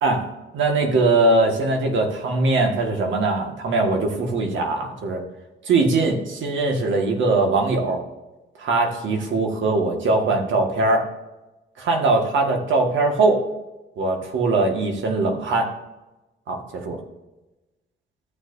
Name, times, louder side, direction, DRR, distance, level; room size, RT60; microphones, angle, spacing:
voice 1, 0.5-5.2 5.6-8.0 8.6-11.0 11.8-13.4 14.0-15.7 16.5-17.0, right 3 dB, 70° right, 3 dB, 1.7 m, -21 dB
14.0 x 6.7 x 2.6 m, 1.1 s
cardioid pair, 90°, 20 cm